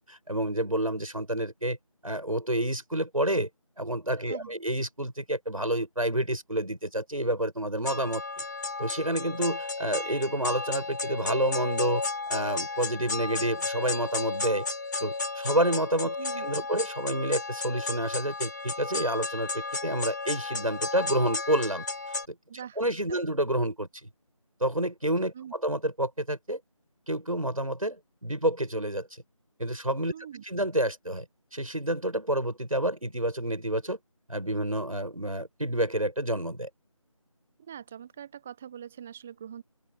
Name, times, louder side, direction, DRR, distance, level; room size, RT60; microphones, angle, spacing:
voice 1, 0.1-1.8 2.0-3.5 3.8-8.2 8.8-12.0 12.3-14.7 15.0-21.9 22.3-24.1 24.6-26.6 27.1-29.2 29.6-30.1 30.4-31.3 31.5-34.0 34.3-36.7, right 1 dB, 75° right, 7.7 m, -29 dB
voice 2, 4.3-4.6 16.2-16.5 22.5-22.8 23.1-23.2 25.3-25.5 30.1-30.4 37.6-39.6, right 9 dB, ahead, 0.8 m, -43 dB
sound 1, 7.9-22.3, left 3 dB, 30° left, 3.2 m, -33 dB
open air
figure-of-eight pair, 165°, 18 cm